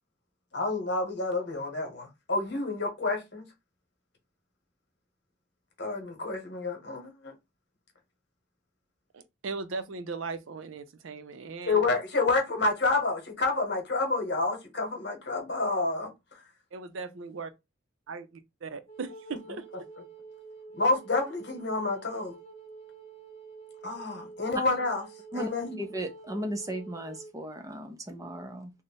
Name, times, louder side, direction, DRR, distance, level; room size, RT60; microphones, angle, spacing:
voice 1, 0.5-3.4 5.8-7.3 11.6-16.1 20.7-22.4 23.8-25.0 25.3-25.8, left 3 dB, 60° left, 1.1 m, -29 dB
voice 2, 9.1-11.9 16.7-17.5 18.1-18.2 18.6-19.6, right 4 dB, 85° right, 0.5 m, -38 dB
Wind instrument woodwind instrument, 18.9-27.3, right 4 dB, 40° left, 0.9 m, -48 dB
voice 3, 25.8-28.7, right 1 dB, 15° right, 0.5 m, -36 dB
3.2 x 2.1 x 4.0 m
head